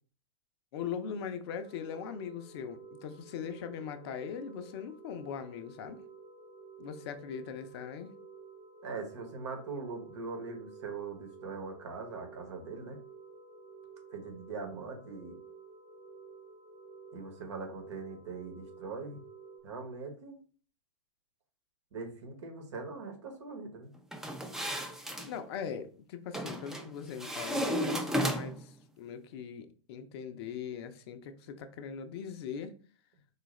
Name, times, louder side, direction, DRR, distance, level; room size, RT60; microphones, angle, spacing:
voice 1, 0.7-6.0 6.8-8.1 25.2-32.7, left 7 dB, 55° left, 0.5 m, -40 dB
sound 1, 1.6-19.6, right 4 dB, 35° right, 0.9 m, -52 dB
voice 2, 8.8-13.0 14.1-15.3 17.1-19.2 19.6-20.4 21.9-23.9, right 4 dB, 65° right, 1.1 m, -41 dB
sound 2, 24.1-25.3 26.3-26.8 27.2-28.7, equal, 5° right, 0.4 m, -33 dB
3.9 x 2.4 x 3.1 m
hypercardioid pair, 105°, 16 cm